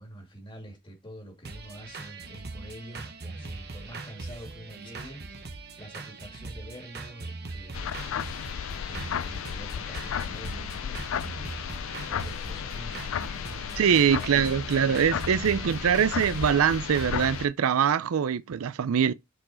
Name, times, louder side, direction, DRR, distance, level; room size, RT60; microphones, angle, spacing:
voice 1, 0.0-8.0 8.9-14.4 14.7-16.6, right 1 dB, 25° left, 2.5 m, -46 dB
sound 1, 1.4-17.4, right 3 dB, 50° right, 1.1 m, -41 dB
sound 2, 7.7-17.5, left 8 dB, 65° left, 0.3 m, -34 dB
voice 2, 13.7-19.1, right 7 dB, 80° right, 0.4 m, -23 dB
6.4 x 4.5 x 4.3 m
head